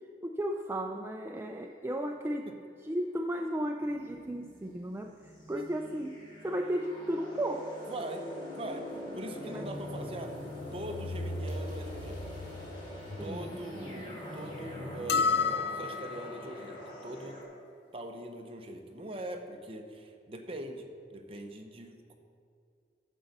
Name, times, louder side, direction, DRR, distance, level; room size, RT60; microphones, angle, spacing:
voice 1, 0.2-2.5 2.8-7.8 9.4-9.7 13.2-13.6, right 1 dB, 15° right, 3 dB, 0.4 m, -35 dB
sound 1, 3.8-17.4, left 1 dB, 30° left, 2.6 m, -42 dB
voice 2, 7.9-8.2 8.6-8.9 9.1-10.3 10.7-12.2 13.2-17.4 17.9-22.1, right 1 dB, 30° right, 4 dB, 0.8 m, -42 dB
sound 2, 15.1-16.4, left 5 dB, 70° left, 0.4 m, -29 dB
9.8 x 7.2 x 6.5 m, 2.4 s
head